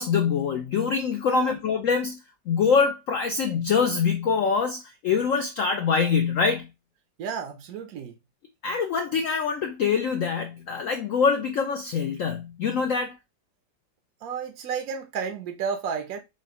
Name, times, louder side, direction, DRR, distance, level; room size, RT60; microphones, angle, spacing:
voice 1, 0.0-2.2 2.5-6.7 8.6-13.2, left 5 dB, 85° left, 0.7 m, -24 dB
voice 2, 7.2-8.2 14.2-16.2, right 6 dB, 70° right, 0.9 m, -32 dB
6.2 x 2.1 x 2.8 m
omnidirectional pair, 2.0 m